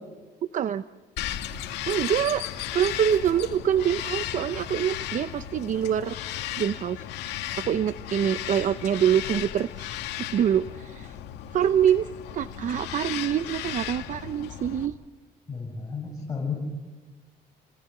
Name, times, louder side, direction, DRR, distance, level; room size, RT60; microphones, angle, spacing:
voice 1, 0.5-0.8 1.9-2.5 2.7-6.2 6.6-7.0 7.6-10.0 10.3-11.2 11.5-12.1 12.3-14.9, right 9 dB, 50° right, 12 dB, 0.8 m, -25 dB
Bird vocalization bird call bird song, 1.2-14.9, left 11 dB, 85° left, 2.1 m, -35 dB
voice 2, 15.5-16.5, left 5 dB, 20° left, -2 dB, 8.0 m, -33 dB
30.0 x 19.0 x 9.6 m, 1.3 s
cardioid pair, 110°, 17 cm